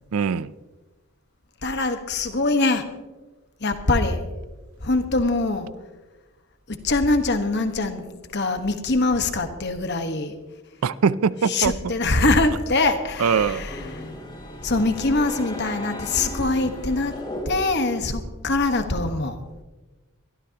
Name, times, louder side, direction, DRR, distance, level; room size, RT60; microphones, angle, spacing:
voice 1, 0.1-0.5 10.8-11.7 13.2-13.6, right 6 dB, 75° right, 0.4 m, -21 dB
voice 2, 1.6-2.8 3.6-4.2 4.8-5.7 6.7-10.3 11.4-14.0 14.6-17.1 17.4-19.4, left 2 dB, 50° left, 1.3 m, -23 dB
sound 1, 12.8-18.0, equal, 20° left, 2.8 m, -36 dB
23.5 x 13.0 x 2.9 m
head